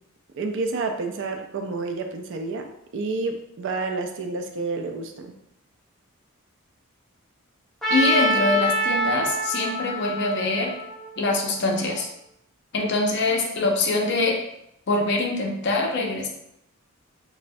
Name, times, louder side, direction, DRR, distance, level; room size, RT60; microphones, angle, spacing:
voice 1, 0.3-2.7 2.9-5.3, right 3 dB, 60° right, 5 dB, 0.3 m, -29 dB
Trumpet, 7.8-11.9, equal, ahead, 0.5 m, -26 dB
voice 2, 7.9-10.7 11.2-12.1 12.7-14.4 14.9-16.3, left 2 dB, 55° left, 1 dB, 0.5 m, -24 dB
3.1 x 2.1 x 2.6 m, 0.80 s
head